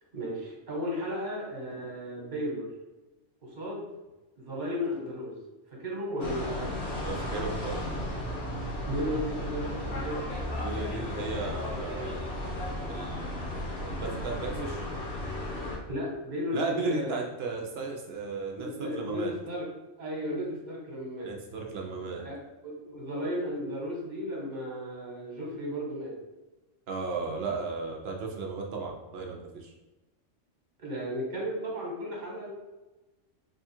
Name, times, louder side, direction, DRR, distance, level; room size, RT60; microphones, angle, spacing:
voice 1, 0.1-2.7 3.4-3.9 4.4-5.4 5.7-6.7 8.9-10.2 15.9-17.2 18.6-19.6 20.0-21.3 22.2-22.4 22.6-26.1 30.8-32.5, equal, 40° right, -3 dB, 1.2 m, -34 dB
sound 1, 6.2-15.8, left 1 dB, 50° left, 1.0 m, -34 dB
voice 2, 7.0-7.9 10.6-12.2 12.9-14.9 16.5-19.3 21.2-22.2 26.9-29.7, right 4 dB, 65° right, 1 dB, 0.7 m, -35 dB
3.3 x 2.3 x 4.3 m, 1.1 s
omnidirectional pair, 1.3 m